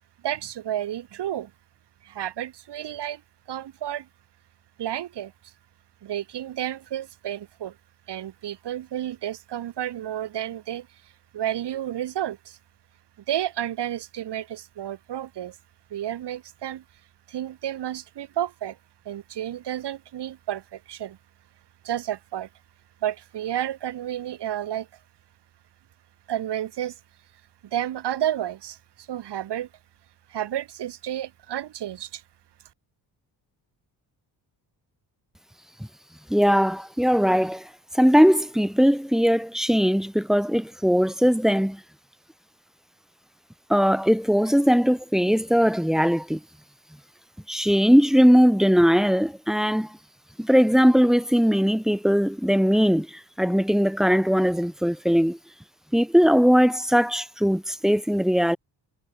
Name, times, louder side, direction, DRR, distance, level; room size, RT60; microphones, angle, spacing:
voice 1, 0.2-1.5 2.0-3.2 3.5-4.1 4.8-5.5 6.0-7.8 8.1-10.9 11.3-12.6 13.3-15.6 15.9-16.8 17.3-18.8 19.1-21.2 21.8-22.5 23.0-24.9 26.3-27.0 27.6-29.7 30.3-32.2, right 11 dB, 75° right, 7.0 m, -31 dB
voice 2, 36.3-37.7 37.9-41.8 43.7-46.4 47.5-49.9 50.4-55.4 55.9-58.6, equal, ahead, 3.0 m, -20 dB
cardioid pair, 110°, 41 cm